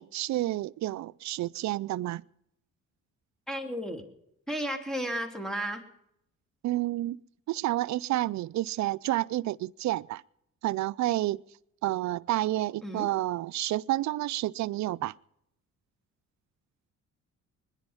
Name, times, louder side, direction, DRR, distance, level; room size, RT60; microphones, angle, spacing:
voice 1, 0.0-2.2 6.6-7.2 7.5-10.2 10.6-11.4 11.8-15.1, right 15 dB, 70° right, 0.5 m, -30 dB
voice 2, 3.5-4.0 4.5-5.8 12.8-13.1, equal, ahead, 2.9 m, -33 dB
22.0 x 10.5 x 5.6 m
cardioid pair, 90°, 30 cm